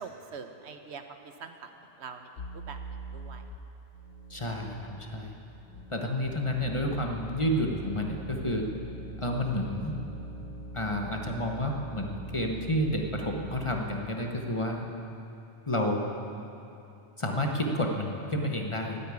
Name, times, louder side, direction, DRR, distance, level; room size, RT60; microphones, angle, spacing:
voice 1, 0.0-1.7 2.0-3.4 5.1-5.9, right 5 dB, 70° right, 7 dB, 1.1 m, -45 dB
sound 1, 2.4-3.6 3.9-13.7, right 1 dB, 75° left, 1.2 m, -43 dB
voice 2, 4.3-5.3 5.9-8.7 9.2-10.0 10.7-14.9 15.7-16.1 17.2-19.0, left 1 dB, 30° left, 1 dB, 1.1 m, -30 dB
13.5 x 9.7 x 8.4 m, 2.8 s
omnidirectional pair, 1.2 m